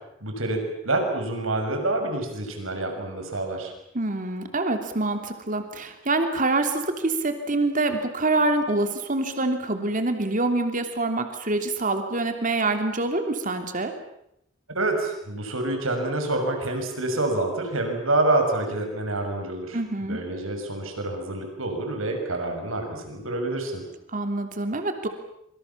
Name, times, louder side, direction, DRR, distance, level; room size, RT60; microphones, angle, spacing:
voice 1, 0.2-3.7 14.7-23.8, right 2 dB, 80° right, 4 dB, 6.5 m, -27 dB
voice 2, 3.9-13.9 19.7-20.2 24.1-25.1, right 2 dB, 40° right, 6 dB, 3.1 m, -26 dB
27.0 x 25.0 x 7.3 m, 0.77 s
head